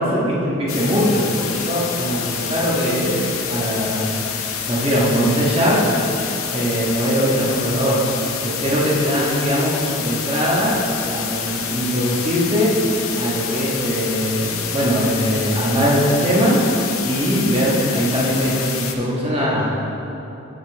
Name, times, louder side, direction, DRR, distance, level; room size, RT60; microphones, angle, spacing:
voice 1, 0.0-4.1 4.7-5.8 6.5-8.0 8.4-12.7 13.1-16.6 17.0-19.7, equal, 25° right, -6 dB, 1.4 m, -20 dB
sound 1, 0.7-18.9, left 7 dB, 85° left, 0.6 m, -27 dB
8.6 x 6.4 x 3.4 m, 3.0 s
head